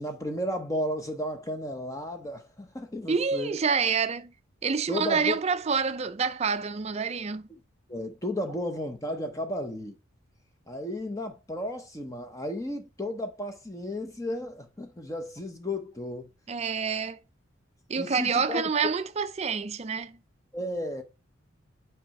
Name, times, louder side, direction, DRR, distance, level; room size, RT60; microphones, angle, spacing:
voice 1, 0.0-3.6 4.9-5.4 7.9-9.9 10.7-16.3 18.0-18.6 20.5-21.0, left 1 dB, 15° left, 0.8 m, -33 dB
voice 2, 3.1-4.3 4.6-7.5 16.5-17.2 17.9-20.2, right 5 dB, 30° right, 0.4 m, -27 dB
6.0 x 4.7 x 5.2 m
head